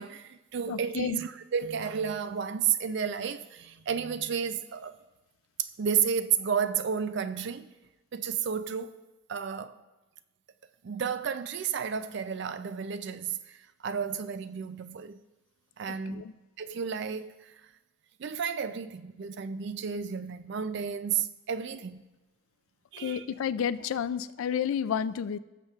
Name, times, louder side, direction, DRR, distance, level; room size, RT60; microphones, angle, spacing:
voice 1, 0.0-5.0 5.6-7.7 8.1-9.0 9.3-9.8 10.8-15.2 15.8-16.2 16.6-17.5 18.2-22.0 22.9-23.3, right 7 dB, 55° right, 0.4 m, -32 dB
voice 2, 0.7-1.2 16.1-16.3 23.0-25.4, left 8 dB, 75° left, 0.3 m, -31 dB
18.0 x 6.6 x 2.4 m
head